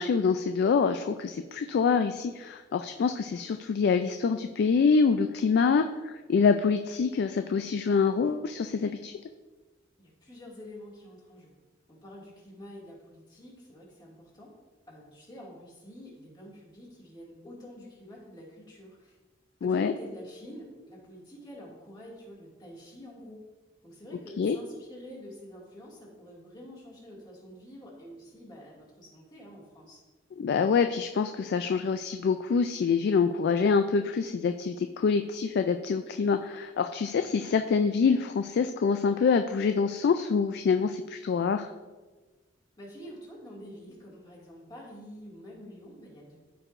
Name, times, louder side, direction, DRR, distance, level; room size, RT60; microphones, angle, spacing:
voice 1, 0.0-9.1 19.6-19.9 24.4-24.6 30.4-41.7, left 5 dB, 55° left, 8 dB, 0.3 m, -26 dB
voice 2, 10.0-11.5 11.9-14.5 14.9-19.2 19.6-23.4 23.8-30.0 42.8-46.5, equal, 20° left, -5 dB, 2.1 m, -47 dB
13.0 x 4.6 x 2.5 m, 1.3 s
head